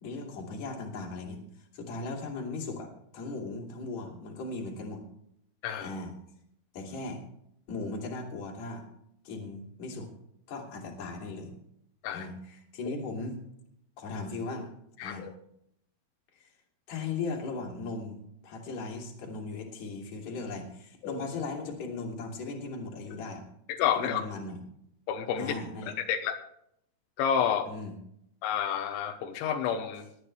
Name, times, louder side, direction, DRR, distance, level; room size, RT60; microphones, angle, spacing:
voice 1, 0.0-1.4 1.7-2.9 3.1-5.0 5.8-6.1 6.7-7.2 7.7-8.8 9.2-10.1 10.5-11.5 12.1-13.4 14.0-14.7 15.0-15.3 16.4-16.5 16.9-23.4 24.0-24.6 25.4-25.9 27.7-27.9, left 3 dB, 45° left, 0 dB, 3.4 m, -37 dB
voice 2, 15.0-15.3 21.0-21.2 23.7-24.2 25.1-25.5 26.1-26.3 27.2-27.7 28.4-30.1, left 8 dB, 85° left, 7 dB, 3.2 m, -29 dB
20.0 x 11.0 x 3.3 m, 0.74 s
omnidirectional pair, 5.4 m